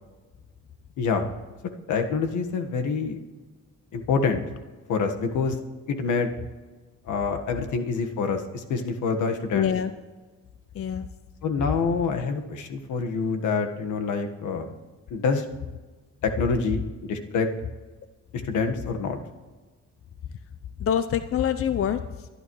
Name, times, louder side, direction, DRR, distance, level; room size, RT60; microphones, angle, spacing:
voice 1, 1.9-3.2 3.9-4.4 4.9-5.6 5.9-6.3 7.1-9.7 11.4-14.7 15.1-15.4 16.2-17.5 18.3-19.2, left 5 dB, 80° left, 5 dB, 1.5 m, -26 dB
voice 2, 9.5-9.9 10.7-11.1 20.8-22.3, left 8 dB, 50° left, 11 dB, 0.6 m, -26 dB
23.0 x 11.5 x 3.2 m, 1.3 s
cardioid pair, 90°, 30 cm